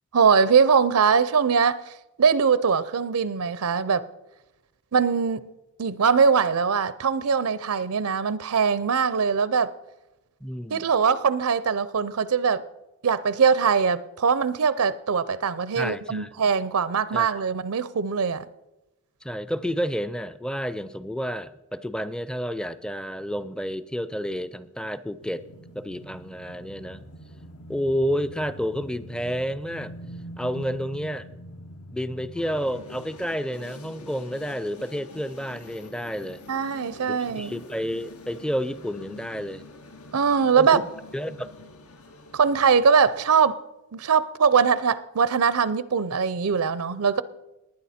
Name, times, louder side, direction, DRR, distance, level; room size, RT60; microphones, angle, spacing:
voice 1, 0.1-1.8 2.2-4.1 4.9-5.5 5.8-9.7 10.7-12.6 13.0-18.5 36.5-37.5 40.1-40.8 42.3-43.6 43.9-47.2, right 6 dB, 80° right, 0.6 m, -22 dB
voice 2, 10.4-10.9 15.8-16.3 17.1-17.3 19.2-25.4 25.7-27.0 27.7-29.9 30.4-31.3 31.9-36.4 37.1-39.6 40.6-40.8 41.1-41.7, equal, 5° left, 0.4 m, -30 dB
sound 1, 25.2-33.2, right 1 dB, 70° left, 1.0 m, -43 dB
sound 2, 32.3-43.3, left 2 dB, 85° left, 1.4 m, -46 dB
19.5 x 9.7 x 4.3 m
head